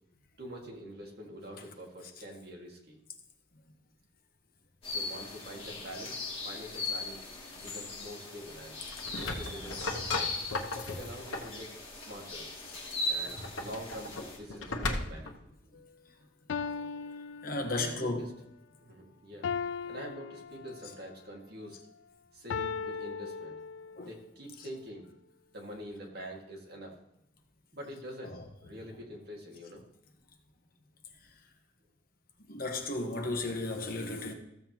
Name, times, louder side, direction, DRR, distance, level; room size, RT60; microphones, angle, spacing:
voice 1, 0.4-3.0 4.9-7.2 7.5-8.8 9.2-10.3 10.8-12.5 13.1-15.3 15.6-15.8 17.6-18.3 18.8-19.5 19.8-21.8 22.3-23.6 24.0-25.1 25.5-27.0 27.7-29.8, equal, 50° right, 2.0 m, -45 dB
sound 1, 4.8-14.4, left 2 dB, 30° left, 2.6 m, -39 dB
sound 2, 8.8-11.6 13.2-15.4, left 3 dB, 85° left, 1.1 m, -36 dB
sound 3, 15.7-15.8 16.5-18.1 19.4-21.1 22.5-24.1, left 6 dB, 70° left, 0.3 m, -38 dB
voice 2, 17.4-18.3 24.0-24.1 28.2-28.4 32.5-34.3, left 2 dB, 50° left, 1.2 m, -34 dB
14.5 x 7.6 x 3.0 m
head